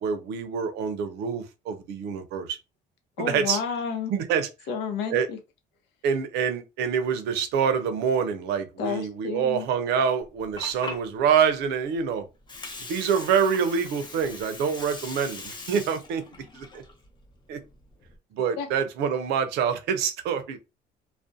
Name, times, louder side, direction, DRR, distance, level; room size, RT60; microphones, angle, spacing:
voice 1, 0.0-2.6 3.2-3.6 4.1-4.5 5.1-5.3 6.0-12.3 12.9-16.2 16.5-16.8 17.5-17.6 18.3-20.6, right 7 dB, 80° right, 0.5 m, -26 dB
voice 2, 3.2-4.1 4.7-5.4 8.8-9.7 18.6-18.7, left 6 dB, 90° left, 0.6 m, -31 dB
Water, 10.2-18.2, left 3 dB, 25° left, 0.7 m, -42 dB
2.4 x 2.1 x 2.5 m
cardioid pair, 110°, 17 cm